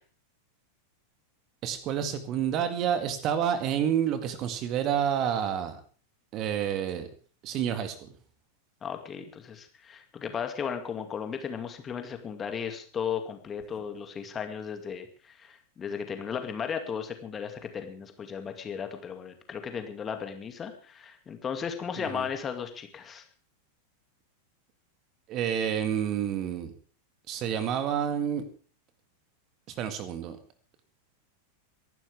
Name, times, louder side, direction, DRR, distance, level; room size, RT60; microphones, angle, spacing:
voice 1, 1.6-5.8 6.3-7.1 7.4-8.1 22.0-22.3 25.3-26.7 27.3-28.4 29.8-30.4, right 9 dB, 35° right, 9 dB, 2.0 m, -29 dB
voice 2, 8.8-23.2, left 7 dB, 20° left, 6 dB, 2.4 m, -35 dB
24.0 x 12.0 x 3.6 m, 0.41 s
figure-of-eight pair, 90°, 0 cm